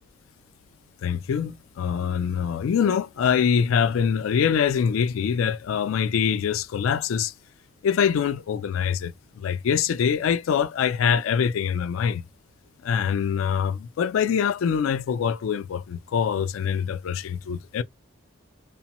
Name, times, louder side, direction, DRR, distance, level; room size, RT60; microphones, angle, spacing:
voice 1, 1.0-7.3 7.8-12.2 12.8-17.8, left 7 dB, 80° left, 0.3 m, -24 dB
2.9 x 2.0 x 2.9 m
head